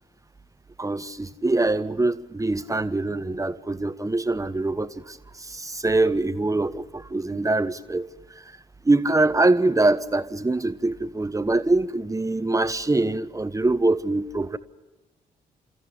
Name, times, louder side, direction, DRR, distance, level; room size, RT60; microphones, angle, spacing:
voice 1, 0.8-8.1 8.8-14.6, right 2 dB, 20° right, 1.1 m, -24 dB
29.0 x 14.0 x 8.6 m
hypercardioid pair, 40°, 18 cm